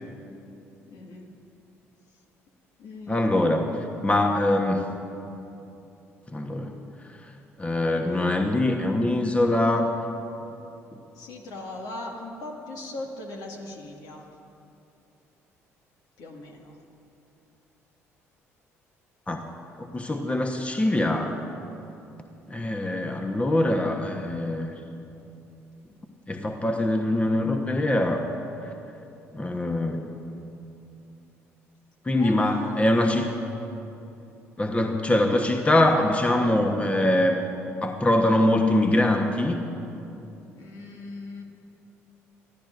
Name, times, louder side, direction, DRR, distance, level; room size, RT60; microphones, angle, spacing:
voice 1, 0.9-1.3 2.8-3.4 11.1-14.2 16.2-16.8 32.2-32.8 40.5-41.4, left 2 dB, 60° left, 1 dB, 1.9 m, -38 dB
voice 2, 3.1-4.8 6.3-6.7 7.6-10.0 19.3-19.4 19.8-21.4 22.5-24.7 26.3-28.3 28.6-28.7 29.3-30.1 32.0-33.4 34.6-37.4 37.8-39.6, left 1 dB, 15° left, 4 dB, 1.2 m, -23 dB
23.5 x 15.5 x 2.6 m, 2.8 s
figure-of-eight pair, 50°, 7 cm